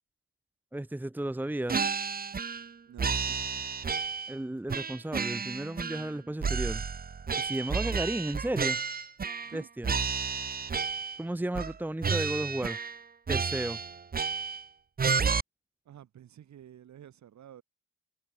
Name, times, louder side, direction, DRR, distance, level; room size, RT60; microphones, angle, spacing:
voice 1, 0.7-1.9 4.3-6.8 7.4-8.8 9.5-9.9 11.2-12.8 13.3-13.8, right 1 dB, 5° right, 1.3 m, -33 dB
sound 1, 1.7-2.7 3.0-4.4 4.7-6.1 6.4-9.6 9.8-11.2 11.6-11.8 12.0-13.0 13.3-14.6 15.0-15.4, right 5 dB, 30° right, 1.4 m, -31 dB
voice 2, 2.8-3.6 9.4-9.7 15.9-17.6, right 10 dB, 65° right, 7.7 m, -50 dB
cardioid pair, 90°, 30 cm